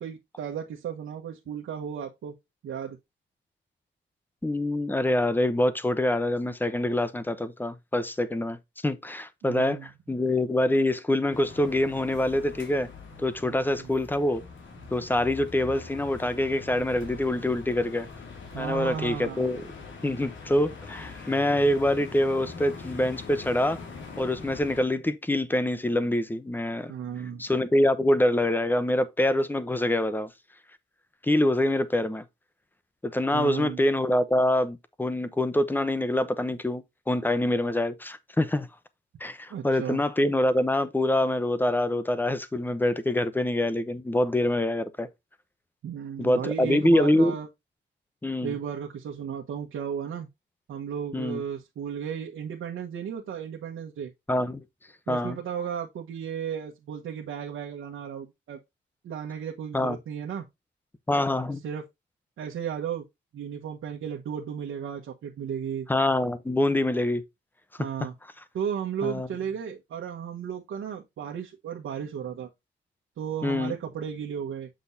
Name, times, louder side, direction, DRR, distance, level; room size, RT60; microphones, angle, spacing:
voice 1, 0.0-2.3 2.6-3.0 9.4-9.9 13.5-13.9 18.5-19.5 26.9-27.4 33.3-33.8 39.5-40.0 45.8-47.5 48.4-50.3 50.7-54.1 55.1-58.6 59.0-60.5 61.6-61.8 62.4-63.0 63.3-65.9 67.8-68.1 68.5-72.5 73.2-74.7, right 8 dB, 85° right, 1.3 m, -34 dB
voice 2, 4.4-8.6 8.8-12.9 13.2-14.4 14.9-18.1 18.6-19.6 20.0-23.8 24.2-26.9 27.4-30.3 31.2-32.2 33.0-38.7 39.2-45.1 46.2-47.3 48.2-48.6 51.1-51.4 54.3-54.6 55.1-55.4 59.7-60.0 61.1-61.6 65.9-67.2 69.0-69.3 73.4-73.7, left 1 dB, 10° left, 0.8 m, -25 dB
sound 1, 11.3-24.8, left 4 dB, 70° left, 2.4 m, -43 dB
7.7 x 6.3 x 2.7 m
wide cardioid pair, 140°, 21 cm